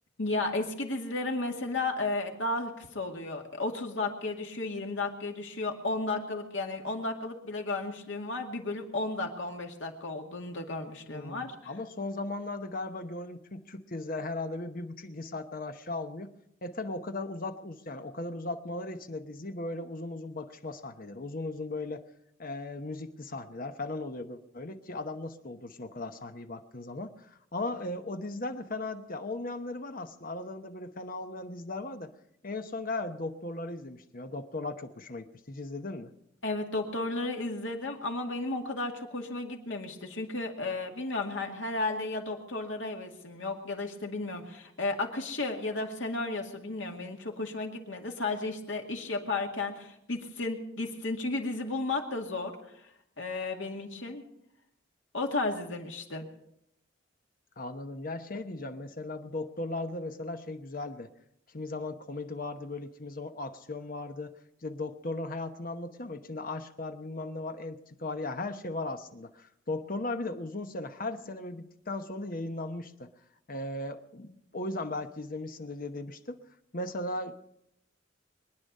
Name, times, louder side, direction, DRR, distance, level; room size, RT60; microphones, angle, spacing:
voice 1, 0.2-11.5 36.4-52.6 53.2-54.2 55.1-56.3, left 2 dB, 75° left, 2 dB, 2.2 m, -33 dB
voice 2, 11.1-16.3 16.6-22.0 22.4-32.1 32.4-36.1 57.6-61.1 61.5-64.3 64.6-73.1 73.5-76.4 76.7-77.4, left 2 dB, 45° left, 7 dB, 1.0 m, -37 dB
23.5 x 9.9 x 5.4 m, 0.77 s
head